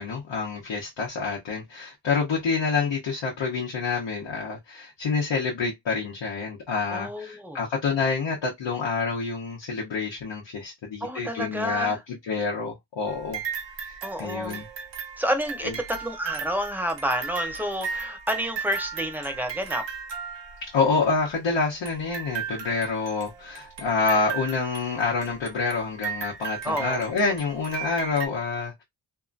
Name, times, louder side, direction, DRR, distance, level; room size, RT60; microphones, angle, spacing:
voice 1, 0.0-12.0 12.3-13.4 13.8-14.6 15.6-15.7 20.7-28.8, left 4 dB, 85° left, 0.9 m, -27 dB
voice 2, 6.9-7.7 11.0-12.0 14.0-14.6 15.2-19.9 26.6-27.0, equal, 5° right, 0.9 m, -29 dB
sound 1, 13.1-21.0 21.8-28.3, right 6 dB, 80° right, 1.0 m, -36 dB
2.8 x 2.5 x 2.4 m
cardioid pair, 75°, 43 cm